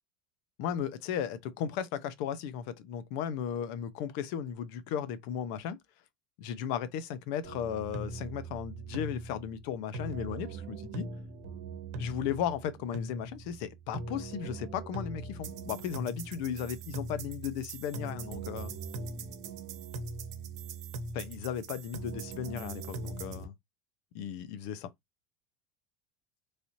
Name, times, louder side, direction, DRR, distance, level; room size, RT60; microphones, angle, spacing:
voice 1, 0.6-5.8 6.4-11.1 12.0-18.7 21.1-23.5 24.1-24.9, left 9 dB, 65° left, 0.6 m, -35 dB
sound 1, 7.4-23.4, right 3 dB, 80° right, 0.9 m, -41 dB
3.2 x 2.8 x 2.6 m
cardioid pair, 155°, 3 cm